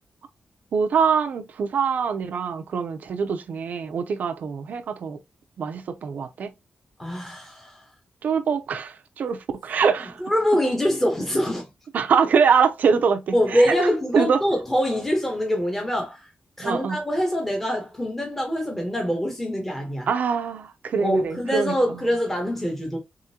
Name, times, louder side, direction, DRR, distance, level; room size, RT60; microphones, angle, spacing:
voice 1, 0.7-5.2 5.6-6.5 8.2-10.2 11.9-13.9 14.1-14.4 16.6-17.0 20.1-21.7, right 6 dB, 70° right, 0.5 m, -23 dB
voice 2, 7.0-7.8 10.2-11.7 12.9-13.0 13.3-16.3 16.6-20.1 21.0-23.0, equal, 10° left, 1.0 m, -24 dB
3.6 x 3.6 x 2.8 m
wide cardioid pair, 170°, 3 cm